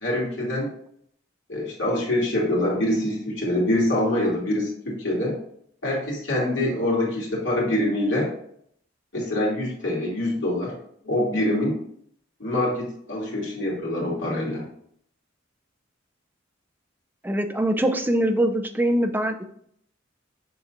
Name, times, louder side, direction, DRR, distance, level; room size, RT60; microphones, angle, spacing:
voice 1, 0.0-0.7 1.5-5.3 5.8-8.3 9.1-10.7 11.0-11.8 12.4-14.6, left 1 dB, 65° left, -4 dB, 2.5 m, -25 dB
voice 2, 17.2-19.4, right 1 dB, 10° right, 6 dB, 0.4 m, -23 dB
6.9 x 5.8 x 2.5 m, 0.67 s
head